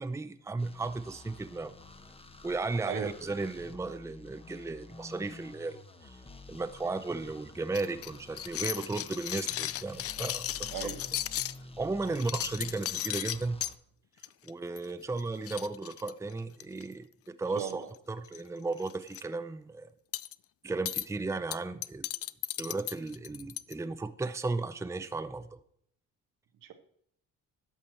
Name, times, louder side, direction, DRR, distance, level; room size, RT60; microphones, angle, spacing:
voice 1, 0.0-1.7 2.4-6.2 6.5-10.7 11.8-13.6 14.4-19.9 20.6-22.1 22.6-25.6, right 3 dB, 10° right, 11 dB, 0.6 m, -35 dB
sound 1, 0.6-13.8, left 2 dB, 20° left, 0.9 m, -50 dB
sound 2, 7.7-11.6 12.1-13.7 14.2-14.5 14.8-14.9 15.2-15.3 15.5-16.8 17.6-18.0 18.2-18.4 18.8-19.2 20.1-20.3 20.9-21.1 21.5-23.7, left 12 dB, 50° left, 0.4 m, -35 dB
voice 2, 10.7-11.0 12.0-12.3 17.5-17.9 26.6-26.7, right 8 dB, 80° right, 6 dB, 1.3 m, -38 dB
11.0 x 6.1 x 4.3 m, 0.67 s
cardioid pair, 80°, 32 cm